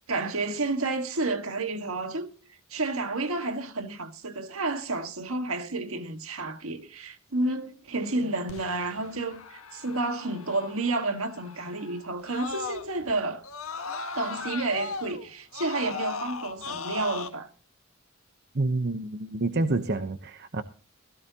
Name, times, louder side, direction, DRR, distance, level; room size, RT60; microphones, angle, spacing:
voice 1, 0.1-2.3 2.7-13.4 14.1-17.5, right 2 dB, 70° right, 1.7 m, -30 dB
Screaming, 8.5-13.1 13.4-17.3, left 4 dB, 70° left, 1.5 m, -38 dB
voice 2, 18.5-20.6, right 2 dB, 50° right, 0.9 m, -28 dB
16.5 x 15.0 x 2.9 m
head